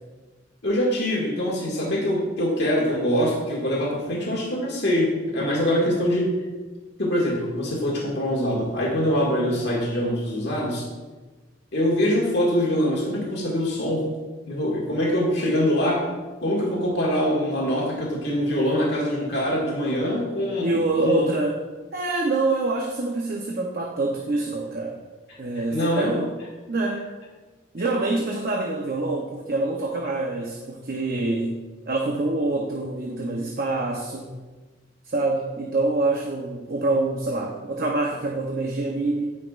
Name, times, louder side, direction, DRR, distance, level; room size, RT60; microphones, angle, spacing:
voice 1, 0.6-6.3 7.0-10.8 11.7-14.1 14.5-16.1 16.4-21.2 25.7-26.1, equal, 60° left, -3 dB, 2.0 m, -24 dB
voice 2, 5.5-6.0 20.6-21.6 21.9-25.0 25.4-26.3 26.7-27.1 27.7-34.4 35.0-39.4, right 2 dB, 50° right, 0 dB, 0.8 m, -26 dB
16.5 x 5.9 x 2.5 m, 1.3 s
head